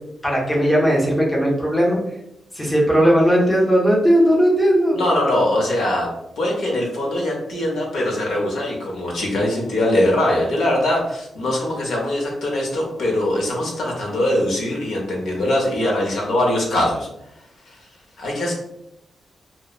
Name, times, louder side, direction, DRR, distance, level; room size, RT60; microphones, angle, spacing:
voice 1, 0.2-2.0 2.5-5.0, equal, 10° left, -4 dB, 0.7 m, -17 dB
voice 2, 4.9-17.1 17.7-17.8 18.2-18.5, left 1 dB, 75° left, -1 dB, 0.7 m, -22 dB
2.9 x 2.0 x 2.3 m, 0.83 s
wide cardioid pair, 180°, 0 cm